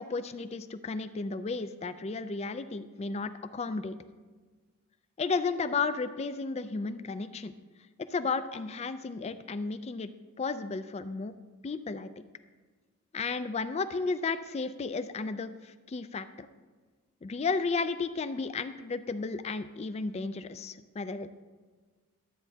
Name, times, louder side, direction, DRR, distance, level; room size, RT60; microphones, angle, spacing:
voice 1, 0.0-4.0 5.2-7.5 8.1-10.1 10.4-11.3 11.6-12.1 13.1-16.5 17.2-21.3, left 4 dB, 30° left, 11 dB, 0.3 m, -33 dB
11.5 x 9.0 x 2.8 m, 1.4 s
head